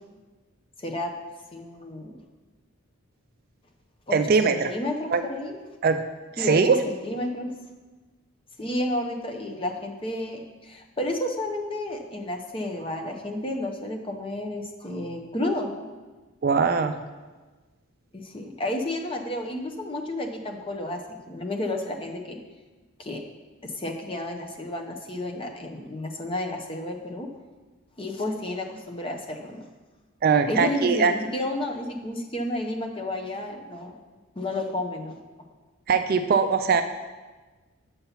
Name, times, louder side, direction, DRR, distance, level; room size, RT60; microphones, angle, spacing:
voice 1, 0.8-1.1 1.5-2.2 4.1-5.6 6.4-7.5 8.6-15.7 18.1-22.4 23.0-23.2 23.6-27.3 28.0-29.7 30.5-34.0 34.4-35.2, left 1 dB, 25° left, 3 dB, 0.7 m, -31 dB
voice 2, 4.1-4.7 5.1-5.2 5.8-6.0 6.4-6.8 16.4-17.0 30.2-31.1 35.9-36.8, right 5 dB, 40° right, 9 dB, 0.3 m, -21 dB
7.0 x 5.5 x 5.6 m, 1.3 s
head